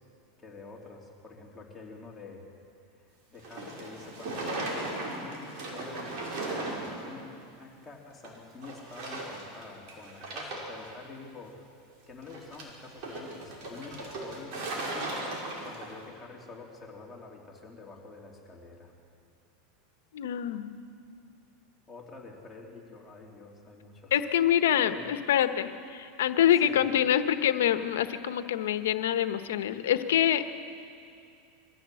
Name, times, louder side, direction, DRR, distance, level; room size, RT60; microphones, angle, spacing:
voice 1, 0.4-2.4 3.1-6.2 6.5-7.3 7.6-11.7 12.1-15.1 15.6-18.9 21.9-24.1 24.8-25.1 26.6-26.8, left 3 dB, 10° left, -3 dB, 3.2 m, -47 dB
sound 1, 3.4-7.1 7.4-7.5 8.2-8.4 8.6-9.6 9.9-10.9 12.2-16.0, right 2 dB, 60° right, 5.7 m, -37 dB
voice 2, 20.1-20.8 24.1-30.4, left 10 dB, 90° left, 10 dB, 1.0 m, -26 dB
23.0 x 15.5 x 7.7 m, 2.4 s
supercardioid pair, 135°, 0 cm